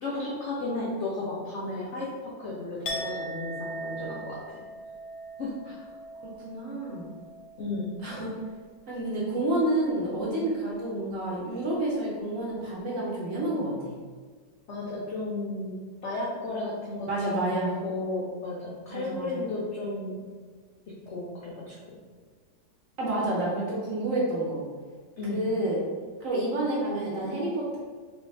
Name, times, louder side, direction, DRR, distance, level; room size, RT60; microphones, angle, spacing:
voice 1, 0.0-2.1 2.4-4.4 5.4-5.5 7.6-7.9 14.7-15.7 16.0-17.1 17.3-20.2 21.1-22.0 25.2-25.4, left 2 dB, 85° left, -5 dB, 0.6 m, -33 dB
Chink clink, 2.9-8.8 9.1-9.5, right 1 dB, 70° left, 0.9 m, -40 dB
voice 2, 6.4-7.1 8.0-8.3 8.9-14.0 17.0-17.7 18.9-19.4 23.0-24.6 25.3-25.8 26.2-27.8, right 1 dB, 55° right, -5 dB, 1.1 m, -29 dB
3.1 x 3.1 x 3.2 m, 1.5 s
omnidirectional pair, 2.0 m